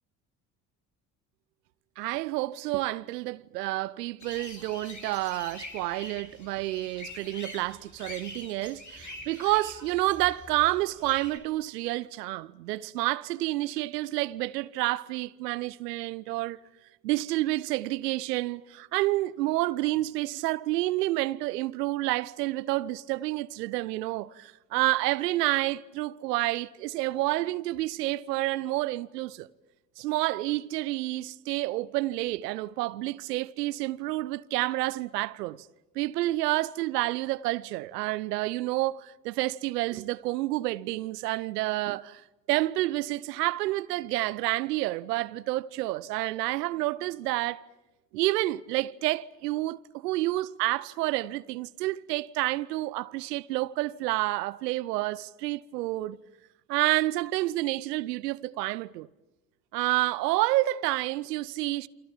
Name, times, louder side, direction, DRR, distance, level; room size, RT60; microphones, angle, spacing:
voice 1, 2.0-16.6 17.0-29.5 30.0-35.7 35.9-42.2 42.5-47.7 48.1-56.2 56.7-59.1 59.7-61.9, right 18 dB, 75° right, 0.9 m, -29 dB
sound 1, 4.2-11.4, left 2 dB, 35° left, 7.7 m, -45 dB
29.0 x 26.5 x 7.3 m
figure-of-eight pair, 55°, 48 cm